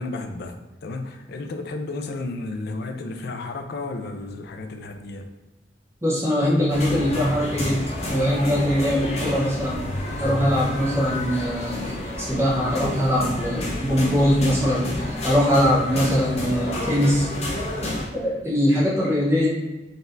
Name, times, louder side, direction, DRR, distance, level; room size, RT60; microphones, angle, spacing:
voice 1, 0.0-5.3, left 2 dB, 60° left, 6 dB, 0.4 m, -33 dB
voice 2, 6.0-9.8 10.2-17.3 18.1-19.5, equal, 15° right, -6 dB, 1.0 m, -22 dB
sound 1, 6.7-18.0, left 1 dB, 35° left, 0.9 m, -30 dB
4.0 x 3.3 x 2.6 m, 1.1 s
head